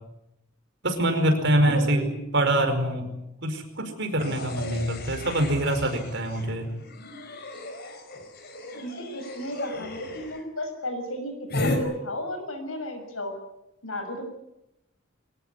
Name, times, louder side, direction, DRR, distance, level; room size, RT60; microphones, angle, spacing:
voice 1, 0.8-2.0 2.3-3.1 3.4-6.7, right 1 dB, 60° right, 6 dB, 5.1 m, -24 dB
voice 2, 1.6-2.2 8.5-13.3 13.8-14.2, left 1 dB, 90° left, 7 dB, 6.4 m, -34 dB
sound 1, 4.2-10.4 11.5-11.8, left 2 dB, 50° left, 4.4 m, -35 dB
23.5 x 18.0 x 9.8 m, 0.89 s
head